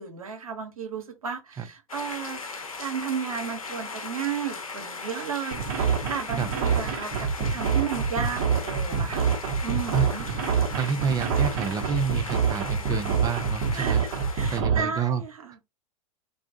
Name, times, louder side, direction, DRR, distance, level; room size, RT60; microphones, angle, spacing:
voice 1, 0.0-9.3 9.6-10.3 11.0-11.3 13.7-14.0 14.3-15.6, right 7 dB, 80° right, 1.0 m, -34 dB
sound 1, 1.9-14.6, left 4 dB, 85° left, 0.6 m, -38 dB
sound 2, 5.5-14.8, right 6 dB, 45° right, 1.0 m, -26 dB
voice 2, 9.9-10.4 10.7-14.0 14.5-15.2, right 6 dB, 20° right, 0.5 m, -28 dB
2.4 x 2.2 x 2.6 m
figure-of-eight pair, 100°, 18 cm